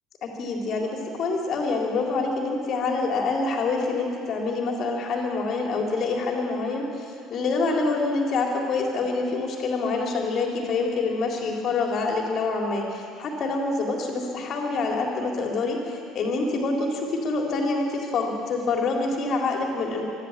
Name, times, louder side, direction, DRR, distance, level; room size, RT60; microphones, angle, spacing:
voice 1, 0.2-20.0, left 3 dB, 45° left, 0 dB, 3.9 m, -26 dB
24.5 x 14.0 x 7.6 m, 2.5 s
figure-of-eight pair, 55°, 0 cm